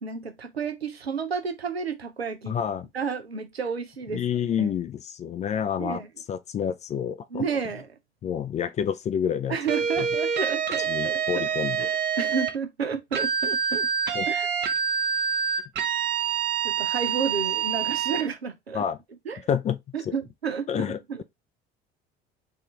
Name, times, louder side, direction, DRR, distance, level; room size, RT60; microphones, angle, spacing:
voice 1, 0.0-2.6 2.9-4.2 4.6-4.7 5.8-6.1 7.3-7.9 9.5-11.5 11.8-13.9 14.3-14.5 16.6-18.8 19.3-19.5 19.9-21.2, right 5 dB, 85° right, 0.5 m, -31 dB
voice 2, 2.5-2.9 4.1-7.4 8.2-9.6 10.0-10.1 10.9-11.9 14.1-14.3 18.7-19.0 19.5-19.8 20.0-20.1 20.7-21.0, left 8 dB, 25° left, 0.4 m, -28 dB
sound 1, 9.7-12.5 13.1-18.3, right 7 dB, 35° right, 0.7 m, -26 dB
3.5 x 2.5 x 3.5 m
figure-of-eight pair, 60°, 30 cm